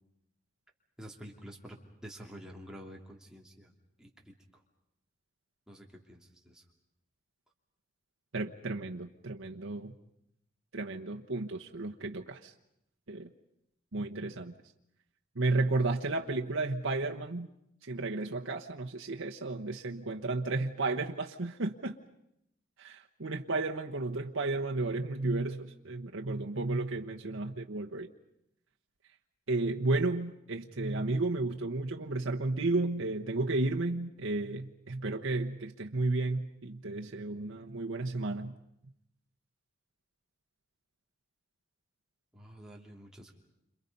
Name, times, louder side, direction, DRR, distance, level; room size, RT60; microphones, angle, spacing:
voice 1, 1.0-3.7 4.0-4.6 5.7-6.6 42.3-43.3, equal, 5° right, -1 dB, 2.9 m, -49 dB
voice 2, 8.3-9.9 10.7-12.5 13.1-13.3 13.9-14.5 15.3-17.5 17.8-22.0 22.8-28.1 29.5-38.5, right 2 dB, 75° right, 1 dB, 1.1 m, -33 dB
29.5 x 27.0 x 5.4 m, 0.80 s
head